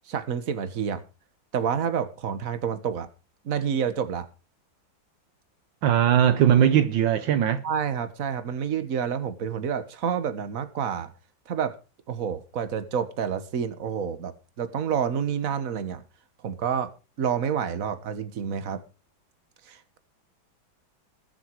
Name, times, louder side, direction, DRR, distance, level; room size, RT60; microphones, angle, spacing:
voice 1, 0.1-1.0 1.5-3.1 3.4-4.3 7.6-11.1 11.5-11.8 12.1-16.0 16.4-16.9 17.2-18.8 19.7-20.0, right 7 dB, 45° right, 1.7 m, -28 dB
voice 2, 5.8-7.6, right 9 dB, 70° right, 1.5 m, -20 dB
21.0 x 7.1 x 4.7 m
omnidirectional pair, 2.1 m